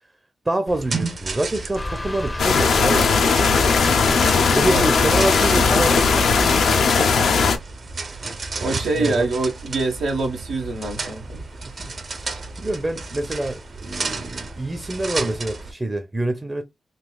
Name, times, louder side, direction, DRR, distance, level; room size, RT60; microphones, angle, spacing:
voice 1, 0.4-3.1 4.5-7.4 8.9-9.2 11.6-11.9 12.6-16.6, right 1 dB, 25° right, 0.6 m, -26 dB
sound 1, 0.7-15.7, right 3 dB, 60° right, 0.9 m, -33 dB
sound 2, 1.7-6.9, left 2 dB, 30° left, 0.5 m, -30 dB
sound 3, 2.4-7.6, left 5 dB, 80° left, 0.5 m, -18 dB
voice 2, 8.6-11.4, right 3 dB, 85° right, 0.9 m, -25 dB
4.0 x 2.3 x 2.3 m
supercardioid pair, 45°, 0 cm